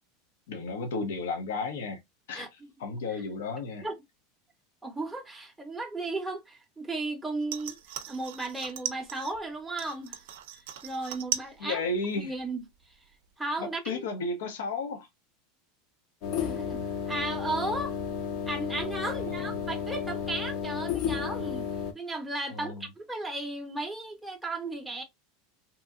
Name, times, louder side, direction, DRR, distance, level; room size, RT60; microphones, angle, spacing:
voice 1, 0.5-2.0 2.3-3.9 11.6-12.3 13.6-15.1 19.1-19.5 22.5-22.9, left 3 dB, 90° left, 0.7 m, -33 dB
voice 2, 4.8-7.8 8.1-10.2 10.8-11.8 12.2-12.6 13.4-14.0 16.4-18.0 18.5-21.7 21.9-25.0, right 2 dB, 5° right, 0.6 m, -35 dB
sound 1, 7.4-9.4 9.8-11.6 11.9-12.4 12.8-12.9, right 11 dB, 75° right, 0.4 m, -38 dB
sound 2, 16.2-21.9, left 7 dB, 50° left, 0.6 m, -33 dB
2.8 x 2.6 x 2.3 m
supercardioid pair, 150°, 0 cm